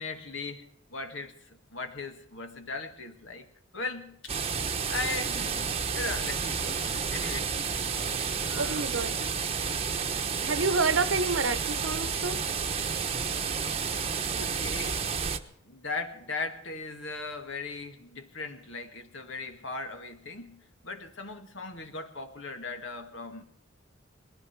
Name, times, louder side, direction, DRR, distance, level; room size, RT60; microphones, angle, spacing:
voice 1, 0.0-3.5 3.7-4.3 4.9-7.5 8.5-8.9 9.4-9.5 14.3-15.0 15.6-23.4, left 3 dB, 70° left, 2.1 m, -38 dB
sound 1, 4.3-15.4, right 6 dB, 30° right, 1.0 m, -31 dB
voice 2, 8.6-9.2 10.4-12.4, right 4 dB, 75° right, 1.0 m, -28 dB
20.5 x 15.0 x 4.7 m
head